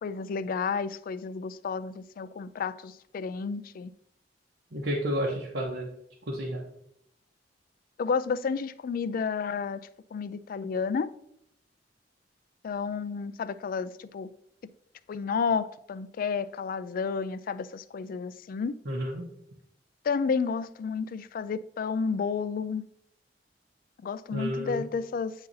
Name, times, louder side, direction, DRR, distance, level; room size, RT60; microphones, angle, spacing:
voice 1, 0.0-3.9 8.0-9.8 10.1-11.1 12.6-14.3 15.1-18.8 20.0-22.8 24.0-25.3, left 5 dB, 50° left, 0.3 m, -31 dB
voice 2, 4.7-5.9 6.3-6.6 18.9-19.2 24.3-24.9, equal, 70° right, 1.0 m, -31 dB
8.9 x 3.9 x 2.7 m
head